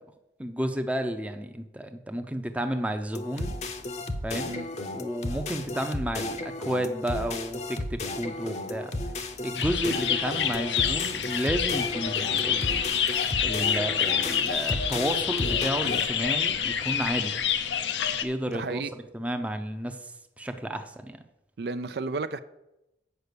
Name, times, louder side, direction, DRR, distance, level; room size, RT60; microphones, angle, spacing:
voice 1, 0.4-3.5 4.2-4.6 4.9-8.9 9.4-13.0 13.4-17.4 18.2-18.8 19.1-21.2, right 1 dB, 10° right, 0.6 m, -32 dB
sound 1, 3.1-16.1, left 2 dB, 40° left, 0.7 m, -34 dB
sound 2, 9.5-18.2, left 8 dB, 85° left, 0.7 m, -27 dB
voice 2, 18.5-18.9 21.6-22.4, right 3 dB, 65° right, 0.4 m, -32 dB
8.1 x 5.6 x 6.8 m
head